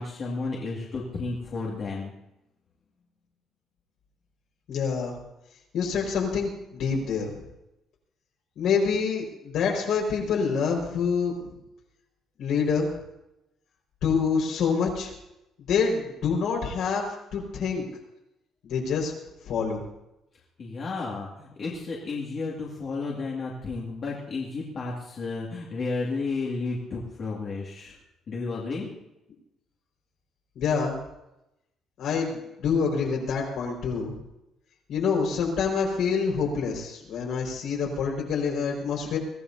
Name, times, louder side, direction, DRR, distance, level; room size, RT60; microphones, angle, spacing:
voice 1, 0.0-2.1 20.6-28.0 28.3-28.9, left 3 dB, 40° left, -4 dB, 2.3 m, -32 dB
voice 2, 4.7-5.1 5.7-7.4 8.6-11.5 12.4-12.9 14.0-15.1 15.6-17.0 17.3-17.9 18.6-19.1 19.4-19.8 30.6-31.0 32.0-34.1 34.9-39.2, left 5 dB, 65° left, 0 dB, 5.2 m, -26 dB
23.0 x 16.0 x 2.8 m, 0.88 s
cardioid pair, 165°, 0 cm